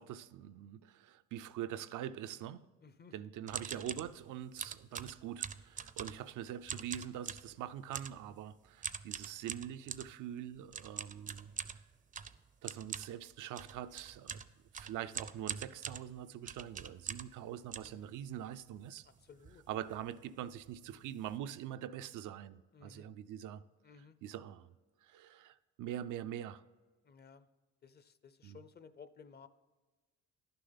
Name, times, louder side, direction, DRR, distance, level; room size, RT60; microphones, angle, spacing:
voice 1, 0.0-2.6 3.1-11.8 12.6-14.4 14.7-19.1 19.7-23.6 24.2-24.7 25.0-26.6 28.4-28.6, right 10 dB, 85° right, 11 dB, 0.5 m, -44 dB
voice 2, 2.8-3.1 17.8-18.1 19.0-19.9 22.7-23.1 23.8-24.2 27.0-27.5 27.8-29.5, left 6 dB, 35° left, 13 dB, 0.5 m, -57 dB
sound 1, 3.5-4.1 4.6-6.3 6.7-7.5 7.9-8.2 8.8-10.1 10.7-17.4 17.7-18.6 19.1-19.2 19.3-19.6 19.9-20.1 20.7-20.8 21.0-21.3, right 6 dB, 25° right, 0.4 m, -43 dB
11.0 x 6.7 x 3.9 m, 1.3 s
cardioid pair, 90°, 30 cm